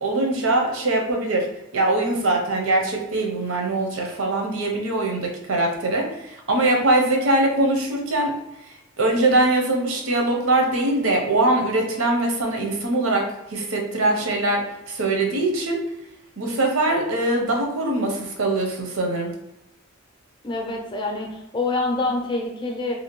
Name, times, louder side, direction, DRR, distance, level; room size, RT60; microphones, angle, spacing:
voice 1, 0.0-1.5 1.7-8.3 8.6-15.8 16.4-19.3, right 2 dB, 85° right, 1 dB, 0.7 m, -22 dB
voice 2, 20.4-22.9, left 2 dB, 25° left, 1 dB, 0.4 m, -26 dB
2.7 x 2.5 x 2.9 m, 0.90 s
head